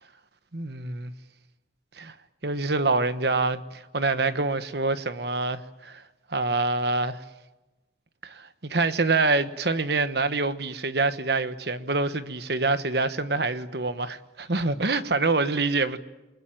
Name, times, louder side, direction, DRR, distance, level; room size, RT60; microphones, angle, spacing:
voice 1, 0.5-1.1 2.0-2.1 2.4-6.0 6.3-7.2 8.2-16.0, right 3 dB, 60° right, 1.3 m, -26 dB
29.0 x 20.5 x 9.0 m
head